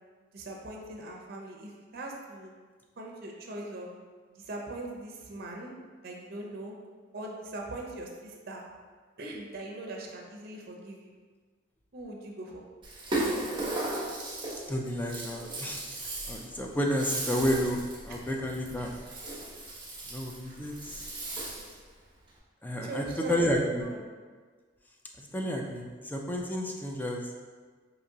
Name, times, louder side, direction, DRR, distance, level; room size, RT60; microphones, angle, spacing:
voice 1, 0.3-2.5 3.0-3.9 4.3-5.7 6.0-6.7 7.1-8.6 9.2-11.1 11.9-12.6 18.1-18.2 22.8-23.5 23.8-24.0, right 2 dB, 55° right, 0 dB, 0.6 m, -41 dB
Rattle (instrument), 12.8-21.8, right 2 dB, 25° right, 0.9 m, -36 dB
voice 2, 14.7-15.8 16.3-18.9 20.1-21.0 22.6-23.8 25.2-27.3, equal, 10° left, 0 dB, 0.4 m, -31 dB
4.9 x 2.9 x 2.7 m, 1.5 s
head